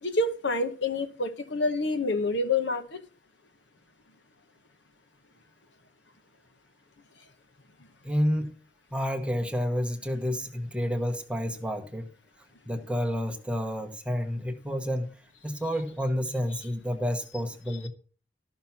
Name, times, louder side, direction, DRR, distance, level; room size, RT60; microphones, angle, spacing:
voice 1, 0.0-3.0, left 2 dB, 65° left, 1.1 m, -27 dB
voice 2, 8.0-8.5 8.9-12.1 12.7-15.1 15.4-17.9, equal, 5° right, 1.0 m, -29 dB
13.0 x 5.8 x 5.7 m
head